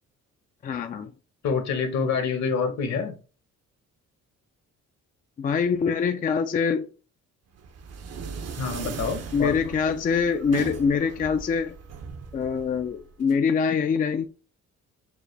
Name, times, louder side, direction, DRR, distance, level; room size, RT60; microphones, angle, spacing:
voice 1, 0.6-1.1 5.4-6.9 9.3-11.7 12.3-14.3, left 6 dB, 30° left, 0.3 m, -24 dB
voice 2, 1.4-3.1 8.6-9.6, left 5 dB, 65° left, 1.2 m, -27 dB
sound 1, 7.6-13.4, right 6 dB, 55° right, 0.7 m, -38 dB
4.8 x 2.1 x 3.2 m
cardioid pair, 90°, 30 cm